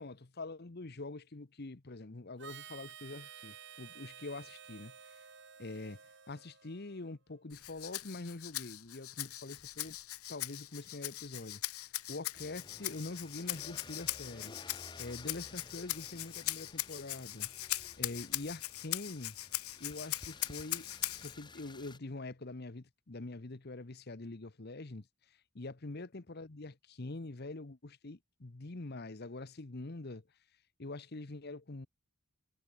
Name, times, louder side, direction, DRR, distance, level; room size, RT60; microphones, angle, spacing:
voice 1, 0.0-5.2 5.6-6.0 6.3-10.0 10.3-14.5 15.0-17.5 18.0-19.4 19.8-20.9 21.2-30.2 30.8-31.9, left 2 dB, 45° left, 1.0 m, -45 dB
Harmonica, 2.4-7.1, right 8 dB, 55° right, 4.2 m, -52 dB
Rattle (instrument), 7.5-21.3, left 16 dB, 80° left, 1.9 m, -40 dB
sound 1, 12.3-22.0, left 3 dB, 20° left, 2.1 m, -54 dB
head